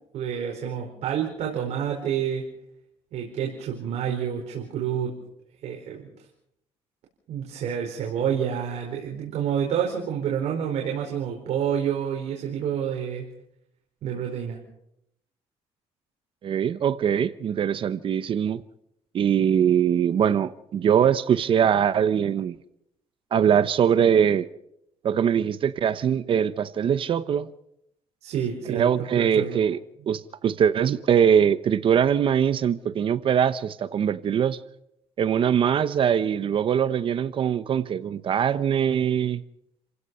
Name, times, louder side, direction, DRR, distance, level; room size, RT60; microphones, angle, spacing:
voice 1, 0.1-2.4 3.1-5.1 5.6-6.1 7.3-13.3 14.0-14.6 28.2-29.6, right 8 dB, 70° right, 4.6 m, -28 dB
voice 2, 16.4-18.6 19.1-22.5 23.3-24.5 25.0-27.5 28.7-29.8 30.1-34.6 35.2-39.4, right 8 dB, 50° right, 0.9 m, -22 dB
29.5 x 16.5 x 5.6 m
cardioid pair, 120°, 11 cm